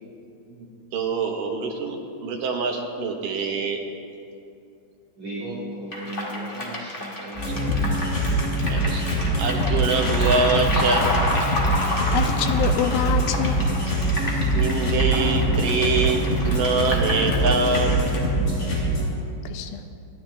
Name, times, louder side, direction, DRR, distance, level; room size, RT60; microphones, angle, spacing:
voice 1, 0.9-3.8 8.7-9.0 9.4-11.1 14.3-18.0 18.5-18.6, right 4 dB, 65° right, 1 dB, 2.6 m, -25 dB
voice 2, 5.2-7.9, right 1 dB, 45° right, -8 dB, 3.3 m, -35 dB
sound 1, 5.9-18.2, left 1 dB, 35° left, 1.1 m, -30 dB
sound 2, 7.4-19.0, right 1 dB, 60° left, 4.6 m, -23 dB
voice 3, 11.8-13.8 19.5-19.8, left 9 dB, 80° left, 8 dB, 2.3 m, -27 dB
26.5 x 10.5 x 3.4 m, 2.6 s
omnidirectional pair, 4.5 m